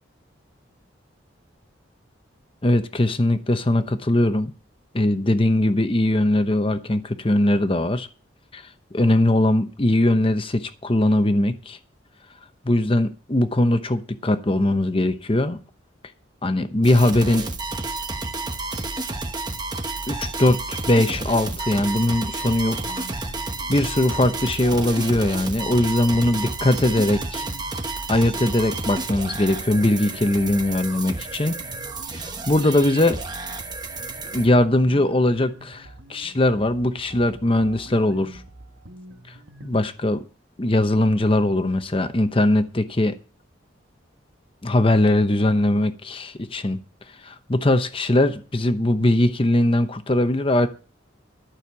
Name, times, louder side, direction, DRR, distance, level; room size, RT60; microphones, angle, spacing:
voice 1, 2.6-4.5 4.9-8.1 8.5-8.6 8.9-11.8 12.6-15.6 16.4-17.5 20.1-23.1 23.7-27.5 28.1-31.6 32.1-33.2 34.3-38.4 39.6-40.2 40.6-43.1 44.6-46.8 47.2-50.7, left 1 dB, 30° left, 0.9 m, -20 dB
sound 1, 16.8-34.5, right 3 dB, 20° right, 1.0 m, -31 dB
sound 2, 22.7-39.7, right 1 dB, 85° right, 1.5 m, -46 dB
12.0 x 6.5 x 7.0 m
head